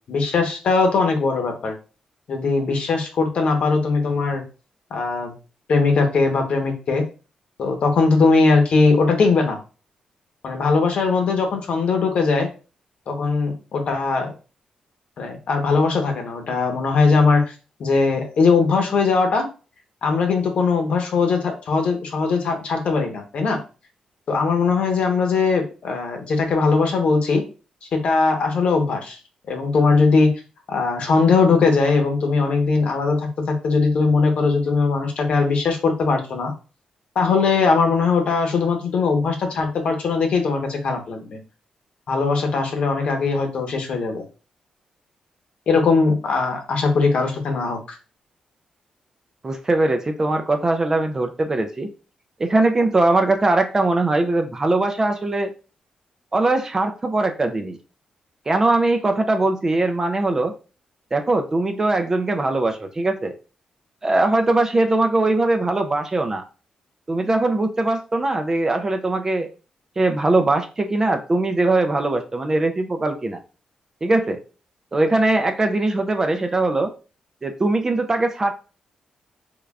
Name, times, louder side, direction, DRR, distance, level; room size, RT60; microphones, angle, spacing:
voice 1, 0.1-1.7 2.3-4.4 4.9-5.3 5.7-7.0 7.6-9.6 10.4-12.5 13.1-14.3 15.2-17.5 17.8-19.4 20.0-23.6 24.3-27.4 27.9-29.2 29.5-30.3 30.7-36.5 37.1-41.4 42.1-44.2 45.7-48.0, left 4 dB, 70° left, 3 dB, 1.0 m, -20 dB
voice 2, 49.4-51.9 52.4-55.5 56.3-57.8 58.5-60.5 61.1-63.3 64.0-66.4 67.1-69.5 70.0-73.4 74.0-74.4 74.9-76.9 77.4-78.5, right 2 dB, 25° right, 5 dB, 0.4 m, -21 dB
3.7 x 3.3 x 2.3 m, 0.34 s
cardioid pair, 110°, 2 cm